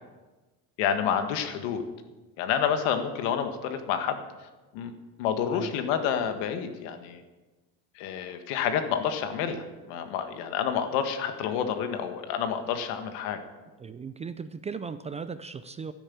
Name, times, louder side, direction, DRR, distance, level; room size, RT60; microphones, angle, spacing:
voice 1, 0.8-1.8 2.4-4.2 4.7-4.9 5.2-7.2 7.9-13.4, left 8 dB, 80° left, 7 dB, 1.7 m, -29 dB
voice 2, 13.8-15.9, right 5 dB, 20° right, 12 dB, 0.4 m, -37 dB
12.5 x 10.0 x 7.2 m, 1.2 s
cardioid pair, 135°, 40 cm